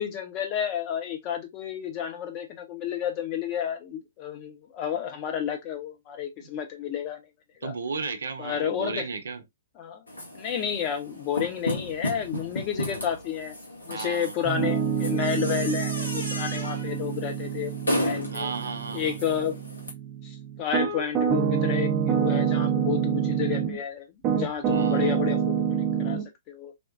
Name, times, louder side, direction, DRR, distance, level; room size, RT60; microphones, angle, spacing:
voice 1, 0.0-7.2 7.6-7.7 8.4-9.1 9.8-10.0 10.3-13.5 13.9-18.5 18.9-19.6 20.2-26.2 26.5-26.7, left 8 dB, 30° left, 0.8 m, -31 dB
voice 2, 7.6-9.4 13.9-14.3 18.3-19.2 24.7-25.1, right 4 dB, 65° right, 0.5 m, -34 dB
sound 1, 10.1-19.9, left 1 dB, 80° left, 1.1 m, -34 dB
Piano, 14.4-23.8 24.2-26.2, right 8 dB, 30° right, 0.7 m, -27 dB
3.4 x 2.2 x 2.5 m
figure-of-eight pair, 115°, 0 cm